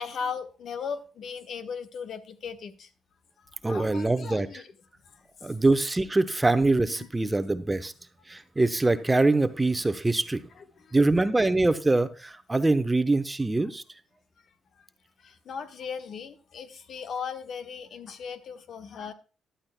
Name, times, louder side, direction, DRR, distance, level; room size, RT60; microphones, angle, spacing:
voice 1, 0.0-2.9 3.7-4.6 7.2-7.3 10.9-11.0 15.2-19.1, left 6 dB, 60° left, 9 dB, 1.3 m, -37 dB
voice 2, 3.6-4.5 5.4-7.9 8.3-10.4 10.9-13.8, right 2 dB, 15° right, 11 dB, 0.9 m, -24 dB
13.5 x 11.5 x 2.2 m, 0.34 s
cardioid pair, 90°, 0 cm